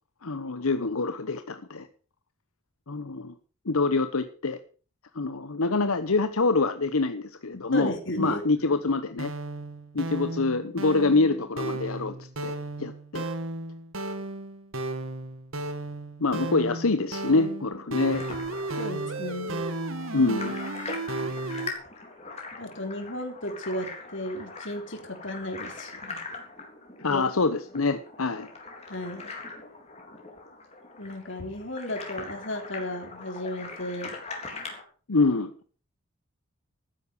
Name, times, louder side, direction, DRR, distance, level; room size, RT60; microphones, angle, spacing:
voice 1, 0.2-1.9 2.9-3.3 3.6-4.6 5.1-9.3 9.9-12.5 12.8-13.3 16.2-18.2 20.1-20.6 27.0-28.5 35.1-35.5, left 3 dB, 90° left, 11 dB, 1.0 m, -25 dB
voice 2, 7.7-8.4 18.8-19.6 22.6-26.2 27.1-27.2 28.9-29.3 31.0-34.1, left 1 dB, 60° left, 5 dB, 3.7 m, -34 dB
sound 1, 9.1-21.7, right 2 dB, 75° right, 2.0 m, -34 dB
sound 2, 18.1-34.8, left 3 dB, 30° left, 3.7 m, -42 dB
13.5 x 10.0 x 6.9 m, 0.40 s
head